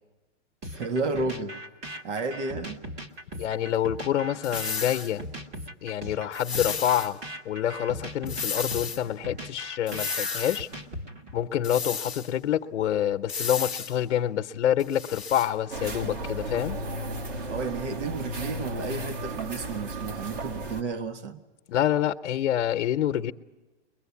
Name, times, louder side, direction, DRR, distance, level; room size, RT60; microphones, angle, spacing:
sound 1, 0.6-11.4, right 1 dB, 20° right, 1.2 m, -39 dB
voice 1, 0.7-1.6 2.0-2.8 17.5-21.4, right 3 dB, 70° right, 1.7 m, -32 dB
voice 2, 3.4-5.2 5.8-10.7 11.3-16.8 21.7-23.3, left 10 dB, 75° left, 0.9 m, -27 dB
sound 2, 4.4-5.1 6.3-7.1 8.3-9.0 9.9-10.6 11.6-12.3 13.3-14.0 14.8-15.5, left 6 dB, ahead, 1.0 m, -33 dB
sound 3, 15.7-20.8, right 1 dB, 50° right, 2.5 m, -34 dB
22.5 x 22.0 x 8.4 m
hypercardioid pair, 165°, 37 cm